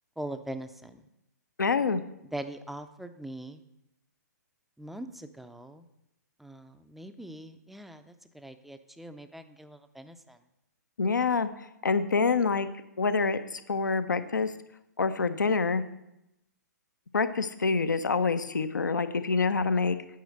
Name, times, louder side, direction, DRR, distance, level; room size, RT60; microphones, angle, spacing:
voice 1, 0.2-1.0 2.3-3.6 4.8-5.9 6.4-10.4, right 1 dB, ahead, 8 dB, 0.4 m, -42 dB
voice 2, 1.6-2.0 11.0-11.5 11.8-12.7 13.0-14.5 15.0-15.8 17.1-20.0, left 4 dB, 80° left, 11 dB, 0.6 m, -26 dB
9.4 x 4.9 x 6.5 m, 0.87 s
figure-of-eight pair, 125°, 10 cm